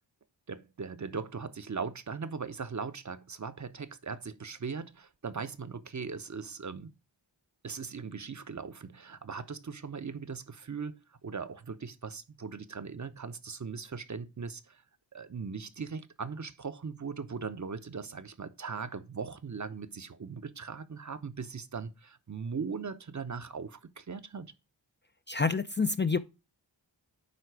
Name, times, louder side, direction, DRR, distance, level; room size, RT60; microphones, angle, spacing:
voice 1, 0.5-6.9 7.6-14.8 15.1-24.5, right 5 dB, 40° right, 0.8 m, -39 dB
voice 2, 25.3-26.2, left 4 dB, 25° left, 0.4 m, -27 dB
9.6 x 3.7 x 4.7 m
cardioid pair, 45°, 45 cm